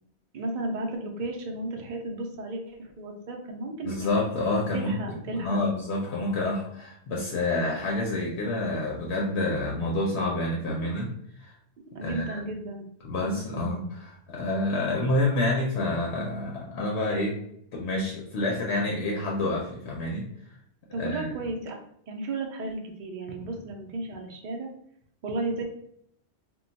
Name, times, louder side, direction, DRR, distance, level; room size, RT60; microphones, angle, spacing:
voice 1, 0.3-4.2 4.7-5.6 11.9-12.8 13.2-13.7 20.9-21.8 22.1-24.7 25.2-25.6, right 2 dB, 55° right, 2 dB, 0.6 m, -34 dB
voice 2, 3.8-5.0 5.3-11.1 11.4-11.5 12.0-12.4 13.0-17.3 17.7-20.2 21.0-21.3, left 2 dB, 75° left, -2 dB, 0.9 m, -28 dB
2.2 x 2.2 x 3.9 m, 0.71 s
omnidirectional pair, 1.2 m